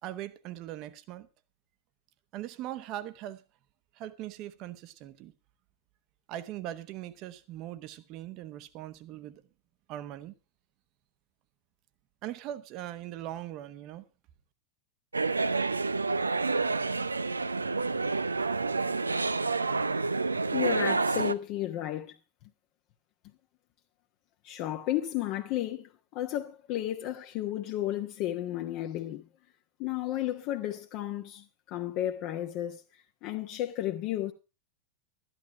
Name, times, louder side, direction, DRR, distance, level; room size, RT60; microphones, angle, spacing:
voice 1, 0.0-1.3 2.3-3.4 3.9-5.3 6.3-9.4 9.9-10.4 12.2-14.0, right 13 dB, 40° right, 1.1 m, -40 dB
sound 1, 15.1-21.3, right 3 dB, 80° right, 0.5 m, -28 dB
voice 2, 20.5-22.2 24.4-29.3 29.8-34.3, left 13 dB, 40° left, 1.0 m, -33 dB
13.0 x 11.0 x 4.4 m
figure-of-eight pair, 90°, 0 cm